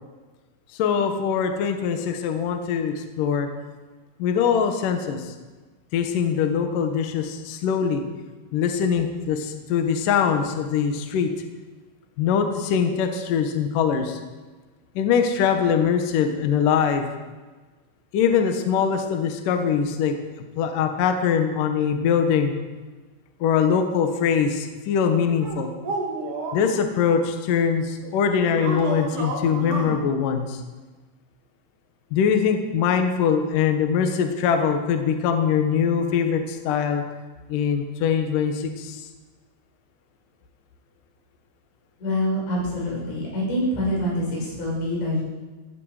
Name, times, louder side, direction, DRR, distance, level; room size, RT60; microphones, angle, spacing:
voice 1, 0.7-3.5 4.2-5.3 5.9-8.0 8.5-11.3 12.2-14.2 15.0-17.1 18.1-20.2 20.6-22.5 23.4-25.7 26.5-30.6 32.1-37.1 37.5-39.0, left 7 dB, 75° left, 6 dB, 1.9 m, -22 dB
sound 1, 25.4-26.7 28.5-30.0, right 2 dB, 45° right, 3.4 m, -30 dB
voice 2, 42.0-45.2, left 1 dB, 60° left, -5 dB, 8.9 m, -25 dB
17.5 x 15.0 x 5.0 m, 1.3 s
omnidirectional pair, 6.0 m